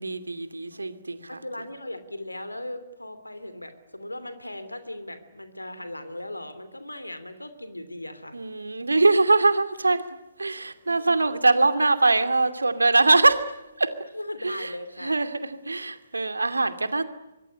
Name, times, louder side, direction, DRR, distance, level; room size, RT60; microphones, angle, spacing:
voice 1, 0.0-1.3 8.3-10.1 10.4-13.9 14.4-14.7 15.0-17.0, right 3 dB, 75° right, 10 dB, 2.5 m, -22 dB
voice 2, 1.3-8.4 8.7-8.8 14.1-15.2, left 1 dB, 85° left, 11 dB, 3.0 m, -38 dB
25.0 x 23.0 x 9.8 m, 0.99 s
figure-of-eight pair, 130°, 0 cm